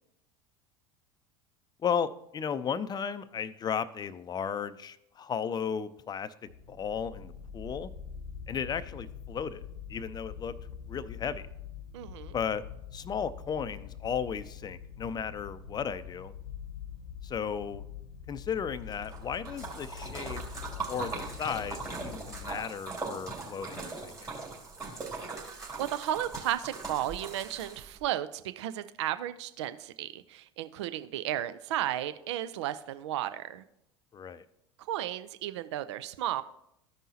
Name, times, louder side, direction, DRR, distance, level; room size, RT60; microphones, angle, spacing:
voice 1, 1.8-6.3 6.7-7.9 8.5-9.6 9.9-10.5 10.9-11.5 12.3-12.6 12.9-16.3 17.2-17.8 18.3-20.4 20.9-24.3 34.1-34.5, left 7 dB, 25° left, 13 dB, 0.5 m, -35 dB
sound 1, 6.5-22.6, left 7 dB, 85° left, 0.6 m, -44 dB
voice 2, 11.9-12.4 25.3-33.6 34.9-36.4, right 12 dB, 70° right, 12 dB, 0.4 m, -34 dB
Splash splatter, 18.9-28.0, right 4 dB, 20° right, 2.7 m, -40 dB
14.0 x 5.4 x 2.8 m, 0.80 s
hypercardioid pair, 75°, 15 cm